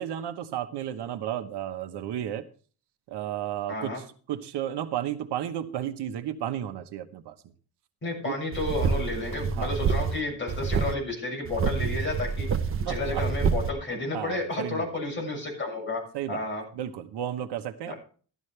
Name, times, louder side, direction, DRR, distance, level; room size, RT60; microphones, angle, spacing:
voice 1, 0.0-2.4 3.1-7.3 8.2-8.4 9.6-9.7 12.9-13.2 14.1-14.9 16.1-16.4 16.7-17.9, right 11 dB, 70° right, 8 dB, 1.1 m, -33 dB
voice 2, 3.7-4.0 8.0-12.5 12.8-16.0 16.3-16.6 17.9-18.0, left 2 dB, 25° left, -2 dB, 6.7 m, -31 dB
sound 1, 8.5-10.2 10.5-10.9 11.5-13.7, right 5 dB, 30° right, 0.9 m, -27 dB
14.5 x 12.0 x 3.3 m, 0.41 s
cardioid pair, 175°, 42 cm